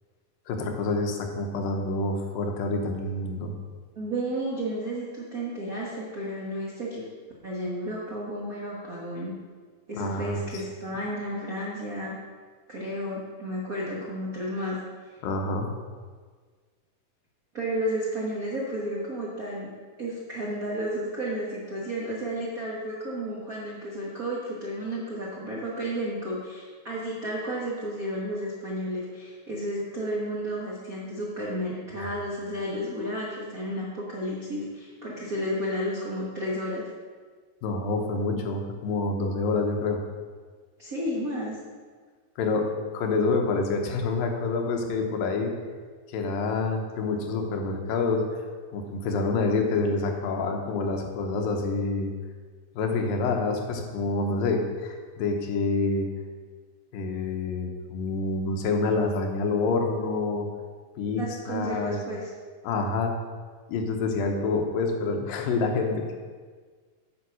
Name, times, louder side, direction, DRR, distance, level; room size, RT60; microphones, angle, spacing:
voice 1, 0.5-3.5 10.0-10.4 15.2-15.7 37.6-40.0 42.4-45.5 46.1-48.2 48.7-52.1 52.8-56.1 56.9-60.5 61.0-62.0 62.6-63.1 63.7-66.1, left 3 dB, 85° left, 3 dB, 2.8 m, -27 dB
voice 2, 3.9-7.0 7.4-9.3 9.9-12.2 12.7-14.8 15.0-15.2 17.5-19.7 20.0-36.8 40.8-41.6 61.2-62.3, equal, 90° right, -5 dB, 0.7 m, -32 dB
9.0 x 5.5 x 6.3 m, 1.5 s
omnidirectional pair, 3.9 m